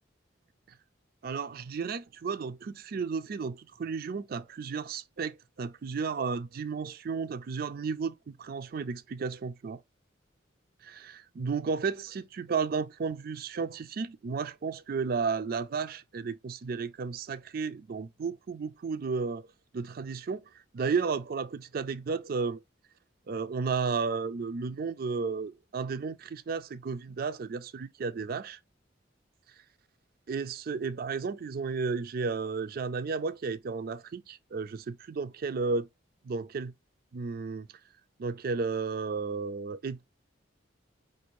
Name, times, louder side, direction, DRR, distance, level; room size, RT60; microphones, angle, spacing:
voice 1, 1.2-9.8 10.8-19.5 19.7-20.4 20.7-22.6 23.3-28.6 30.3-35.9 36.2-36.7 37.1-37.7 38.2-40.1, right 5 dB, 50° right, 0.4 m, -33 dB
5.1 x 2.6 x 3.0 m
head